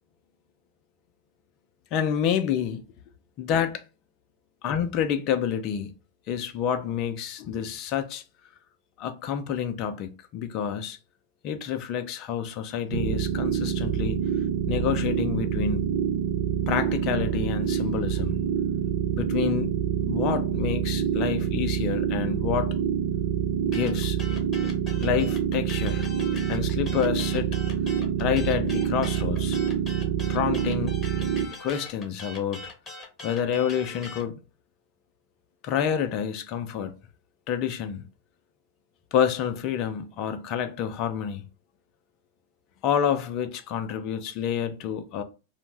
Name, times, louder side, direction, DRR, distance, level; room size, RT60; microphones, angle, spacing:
voice 1, 1.9-2.8 3.4-3.8 4.6-5.9 6.3-8.2 9.0-11.0 11.4-14.2 14.7-15.8 16.7-18.4 19.2-19.7 20.0-22.8 23.7-24.2 25.0-26.1 26.5-27.6 28.2-29.6 30.3-31.0 31.6-32.7 33.2-34.3 35.6-36.9 37.5-38.0 39.1-41.4 42.8-45.2, left 8 dB, 40° left, 0.4 m, -28 dB
sound 1, 12.9-31.5, right 9 dB, 60° right, 0.4 m, -26 dB
sound 2, 23.7-34.3, left 3 dB, 20° left, 0.8 m, -41 dB
2.5 x 2.0 x 3.1 m
figure-of-eight pair, 90°, 0 cm